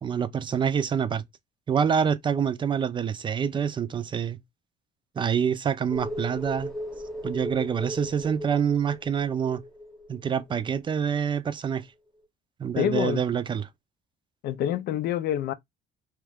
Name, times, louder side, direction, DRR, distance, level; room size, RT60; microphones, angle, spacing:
voice 1, 0.0-1.2 1.7-4.4 5.2-6.7 7.2-9.6 10.1-11.9 12.6-13.6, right 7 dB, 30° right, 0.4 m, -26 dB
sound 1, 5.9-11.1 11.4-11.5, equal, 5° left, 1.0 m, -37 dB
voice 2, 12.8-13.2 14.4-15.5, left 10 dB, 70° left, 0.5 m, -26 dB
2.8 x 2.4 x 3.4 m
cardioid pair, 110°, 17 cm